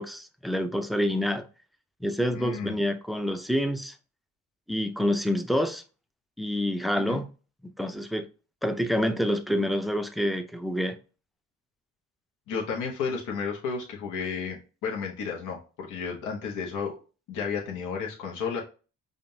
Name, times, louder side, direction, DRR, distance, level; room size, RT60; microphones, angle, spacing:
voice 1, 0.0-1.5 2.0-4.0 4.7-5.8 6.4-7.3 7.8-8.3 8.6-11.0, equal, ahead, 0.4 m, -27 dB
voice 2, 2.3-2.8 7.0-7.2 12.5-17.0 17.3-18.6, left 5 dB, 80° left, 1.0 m, -32 dB
5.1 x 2.5 x 2.7 m
cardioid pair, 90°, 30 cm